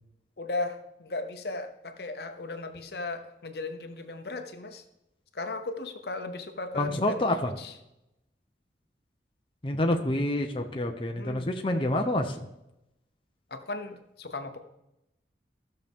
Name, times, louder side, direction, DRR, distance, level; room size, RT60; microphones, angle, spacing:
voice 1, 0.4-4.8 5.3-7.7 11.1-11.5 13.5-14.6, left 2 dB, 65° left, 7 dB, 0.9 m, -36 dB
voice 2, 6.7-7.5 9.6-12.5, left 1 dB, 30° left, 3 dB, 0.7 m, -27 dB
15.0 x 6.6 x 3.6 m, 0.88 s
head